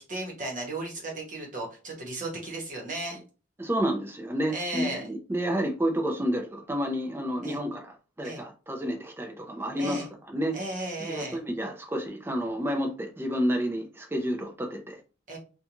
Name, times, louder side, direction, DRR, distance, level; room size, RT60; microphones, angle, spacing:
voice 1, 0.0-3.2 4.5-5.1 7.4-7.6 8.2-8.4 9.8-10.1 10.5-11.4 15.3-15.4, right 2 dB, 40° right, 0.9 m, -35 dB
voice 2, 3.6-10.0 10.3-10.6 11.1-15.0, equal, 10° right, 0.4 m, -30 dB
2.4 x 2.2 x 2.9 m
head